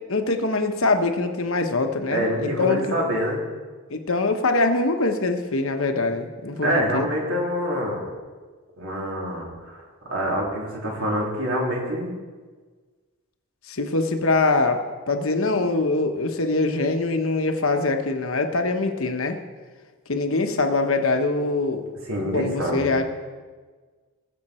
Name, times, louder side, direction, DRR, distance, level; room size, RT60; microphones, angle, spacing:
voice 1, 0.1-2.8 3.9-7.1 13.7-19.4 20.1-21.9 22.3-23.0, left 3 dB, 65° left, 5 dB, 1.1 m, -23 dB
voice 2, 2.1-3.4 6.6-8.1 8.8-9.8 10.1-12.1 22.1-22.9, equal, 65° right, -3 dB, 3.3 m, -26 dB
19.5 x 7.4 x 4.4 m, 1.4 s
head